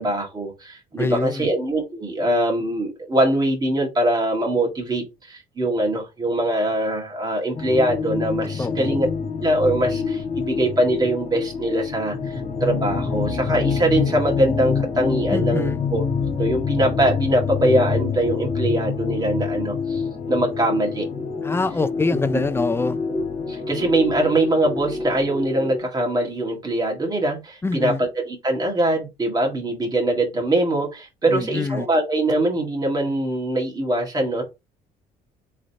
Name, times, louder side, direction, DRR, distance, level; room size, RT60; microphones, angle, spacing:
voice 1, 0.0-9.1 9.4-16.0 16.4-20.0 20.3-21.1 22.3-22.4 23.1-34.4, right 1 dB, 25° right, 1.8 m, -22 dB
voice 2, 1.0-1.5 8.6-9.0 15.3-15.8 21.4-23.0 27.6-28.0 31.3-31.9, left 3 dB, 15° left, 0.5 m, -25 dB
sound 1, 7.5-25.8, left 5 dB, 45° left, 1.7 m, -26 dB
3.8 x 3.3 x 4.1 m
cardioid pair, 110°, 17 cm